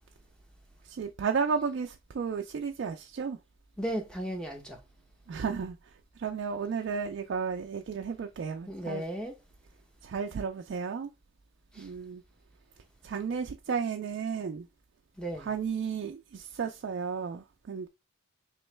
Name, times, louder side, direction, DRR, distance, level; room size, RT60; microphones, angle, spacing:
voice 1, 0.8-3.4 5.3-9.0 10.0-11.1 11.8-12.2 13.0-14.7 15.3-17.9, right 6 dB, 55° right, 0.3 m, -33 dB
voice 2, 3.8-4.8 8.7-9.3 11.7-11.9 15.2-15.5, right 1 dB, 5° left, 0.7 m, -35 dB
3.7 x 3.1 x 3.2 m
head